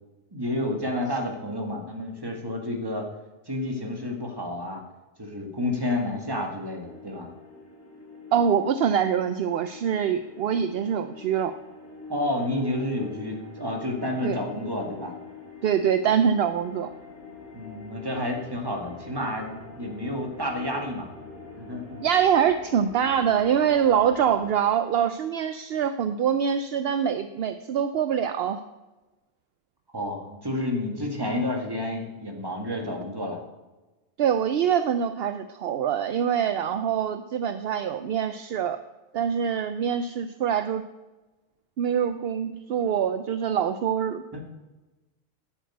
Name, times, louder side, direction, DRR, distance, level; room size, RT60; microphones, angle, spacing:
voice 1, 0.3-3.1 3.5-4.8 5.2-7.3 12.1-15.1 17.5-21.1 21.6-22.0 29.9-33.4 44.3-44.4, left 1 dB, 20° right, 1 dB, 2.0 m, -30 dB
sound 1, 6.8-24.5, left 3 dB, 55° left, 2.6 m, -45 dB
voice 2, 8.3-11.5 14.2-14.4 15.6-16.9 22.0-28.6 34.2-38.8 39.1-40.8 41.8-44.2, right 8 dB, 65° right, 10 dB, 0.8 m, -24 dB
9.3 x 8.6 x 7.8 m, 1.1 s
omnidirectional pair, 1.1 m